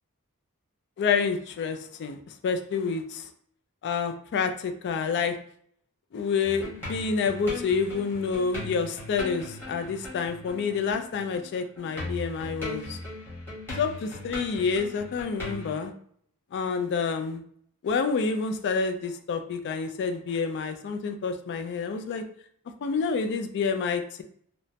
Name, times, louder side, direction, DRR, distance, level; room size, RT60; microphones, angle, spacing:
voice 1, 1.0-3.3 3.8-5.4 6.1-13.0 13.7-15.9 16.5-17.4 17.8-22.2 22.8-24.2, left 5 dB, 50° left, 7 dB, 0.3 m, -28 dB
sound 1, 6.4-11.5 11.8-15.8, left 2 dB, 10° left, 1.1 m, -39 dB
2.9 x 2.1 x 2.7 m, 0.62 s
head